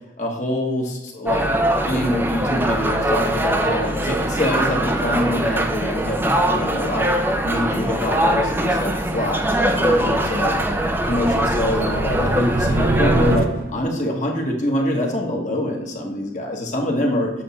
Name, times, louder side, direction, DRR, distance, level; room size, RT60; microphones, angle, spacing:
voice 1, 0.2-1.5 1.9-7.2 7.4-9.4 9.8-10.6 11.0-17.3, left 1 dB, 45° left, 0 dB, 1.4 m, -25 dB
sound 1, 1.3-13.4, right 1 dB, 10° right, 0.6 m, -22 dB
sound 2, 9.4-14.0, right 2 dB, 55° right, 0.6 m, -26 dB
7.7 x 3.6 x 5.7 m, 0.91 s
head